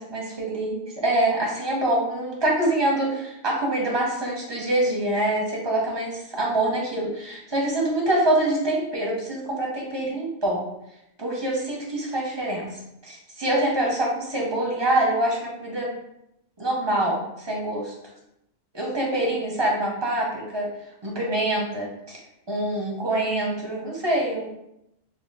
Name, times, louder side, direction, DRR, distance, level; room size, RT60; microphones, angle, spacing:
voice 1, 0.0-10.6 11.2-15.9 16.6-17.9 18.7-20.7 21.0-22.2 22.5-24.5, right 1 dB, 30° right, -3 dB, 0.6 m, -25 dB
3.4 x 2.0 x 4.0 m, 0.82 s
omnidirectional pair, 1.3 m